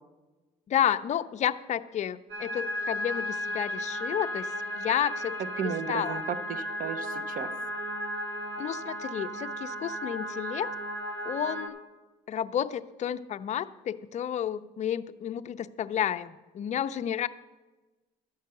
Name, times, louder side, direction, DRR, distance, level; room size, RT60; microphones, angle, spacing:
voice 1, 0.7-6.2 8.6-10.7 11.2-11.8 12.3-17.3, left 10 dB, 45° left, 10 dB, 0.5 m, -31 dB
sound 1, 2.3-11.7, equal, 75° right, 1.7 m, -35 dB
voice 2, 5.6-7.5, right 7 dB, 55° right, 13 dB, 0.8 m, -34 dB
12.0 x 5.6 x 7.6 m, 1.2 s
cardioid pair, 110°, 17 cm